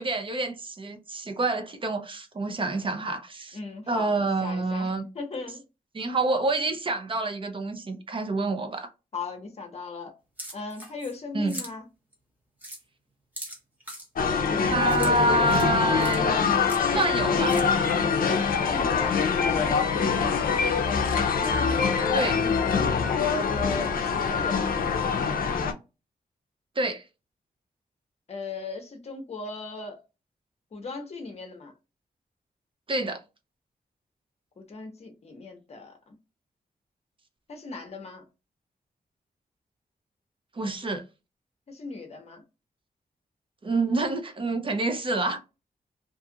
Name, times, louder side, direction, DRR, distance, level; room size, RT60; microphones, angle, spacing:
voice 1, 0.0-3.6 3.9-5.1 5.9-8.9 11.3-11.5 14.6-17.6 22.1-22.5 26.8-27.0 32.9-33.2 40.5-41.0 43.6-45.4, right 2 dB, 35° right, 0.5 m, -27 dB
voice 2, 3.5-5.6 9.1-10.2 10.5-11.9 18.6-20.5 23.5-24.9 28.3-30.0 30.7-31.7 34.6-36.2 37.5-38.2 41.7-42.4, left 3 dB, 45° left, 0.7 m, -38 dB
sound 1, 10.4-11.2 11.5-11.7 12.1-12.2 12.6-12.8 13.4-14.1 14.9-15.1 15.4-15.7 16.0-16.2 16.7-17.2 17.5-17.7, right 1 dB, 10° right, 0.9 m, -40 dB
sound 2, 14.2-25.7, left 6 dB, 70° left, 0.5 m, -24 dB
2.5 x 2.3 x 2.7 m
wide cardioid pair, 125°, 15 cm